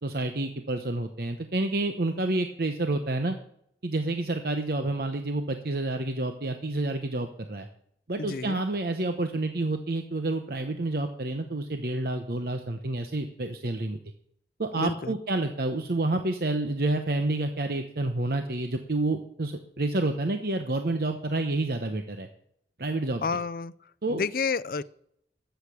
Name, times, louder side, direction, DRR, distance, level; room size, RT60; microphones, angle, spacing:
voice 1, 0.0-3.3 3.8-7.7 8.1-14.0 14.6-22.3 22.8-23.2 24.0-24.2, right 2 dB, 55° right, 6 dB, 0.9 m, -29 dB
voice 2, 8.2-8.6 14.8-15.2 23.2-23.7 24.1-24.8, left 5 dB, 55° left, 18 dB, 0.4 m, -30 dB
13.5 x 8.1 x 6.8 m, 0.72 s
head